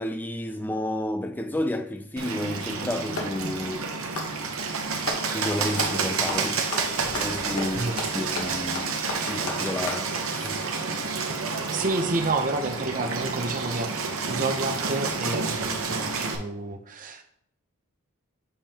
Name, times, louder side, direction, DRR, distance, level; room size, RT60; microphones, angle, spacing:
voice 1, 0.0-3.9 5.3-6.6 7.2-10.6, left 1 dB, 10° left, 0.3 m, -31 dB
Bird, 2.2-16.4, right 4 dB, 65° right, 0.9 m, -29 dB
Clapping, 3.2-3.4 4.0-5.3 5.7-6.0 6.3-10.1, left 2 dB, 75° left, 1.2 m, -34 dB
voice 2, 11.7-17.2, right 3 dB, 40° right, 0.7 m, -29 dB
7.0 x 5.3 x 2.9 m
head